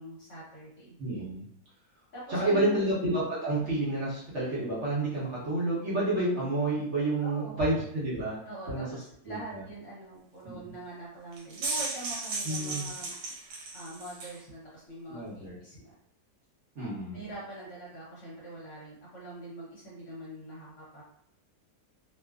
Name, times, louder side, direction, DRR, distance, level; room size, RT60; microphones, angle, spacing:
voice 1, 0.0-0.9 2.1-2.8 7.2-7.6 8.4-13.1 13.7-15.9 17.1-21.0, right 1 dB, 55° left, -6 dB, 1.0 m, -44 dB
voice 2, 1.0-1.5 2.3-8.4 8.7-8.9 9.3-9.6 10.4-10.7 12.4-12.9 15.1-15.6 16.8-17.2, right 2 dB, 55° right, -8 dB, 1.0 m, -29 dB
sound 1, 11.3-14.4, right 3 dB, 85° right, 1.2 m, -35 dB
2.6 x 2.4 x 2.3 m, 0.71 s
omnidirectional pair, 1.8 m